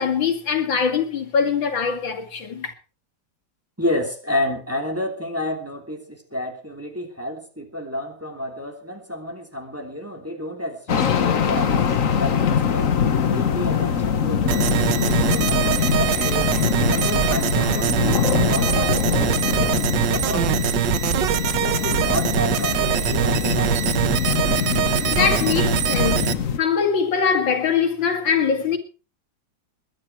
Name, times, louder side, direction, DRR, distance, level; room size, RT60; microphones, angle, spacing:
voice 1, 0.0-2.7 25.1-26.2 26.6-28.8, left 6 dB, 90° left, 3.0 m, -22 dB
voice 2, 3.8-13.0 13.3-16.5 16.9-21.0 21.6-23.8, left 1 dB, 5° right, 2.9 m, -30 dB
sound 1, 10.9-26.6, left 7 dB, 50° left, 1.4 m, -23 dB
sound 2, 14.5-26.3, right 10 dB, 75° right, 1.6 m, -23 dB
21.5 x 10.5 x 4.5 m
omnidirectional pair, 2.0 m